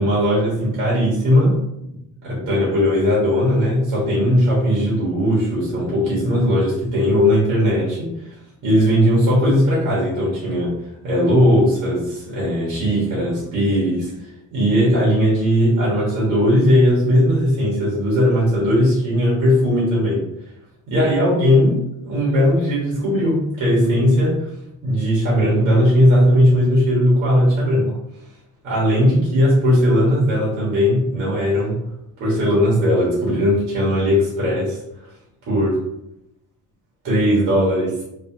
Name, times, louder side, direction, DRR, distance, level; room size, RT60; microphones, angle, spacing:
voice 1, 0.0-1.6 2.2-8.3 8.6-10.7 11.0-14.1 14.5-20.2 20.9-24.5 24.8-27.9 28.6-31.8 32.2-34.8 35.5-35.8 37.0-37.9, equal, 85° right, -6 dB, 1.4 m, -18 dB
2.9 x 2.8 x 2.6 m, 0.82 s
cardioid pair, 100°, 30 cm